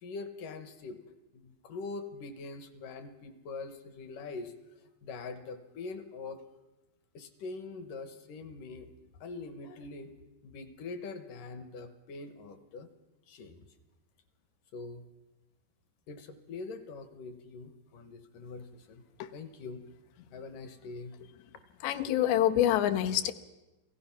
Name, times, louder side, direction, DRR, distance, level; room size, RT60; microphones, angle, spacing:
voice 1, 0.0-1.0 1.3-4.5 5.0-6.4 7.1-8.9 9.2-10.1 10.4-12.9 13.3-13.7 14.7-15.0 16.1-19.0 19.3-19.8 20.3-21.2, left 3 dB, 65° left, 9 dB, 2.2 m, -43 dB
voice 2, 21.8-23.3, left 11 dB, 85° left, 8 dB, 3.0 m, -26 dB
28.0 x 16.5 x 5.8 m, 1.1 s
omnidirectional pair, 4.9 m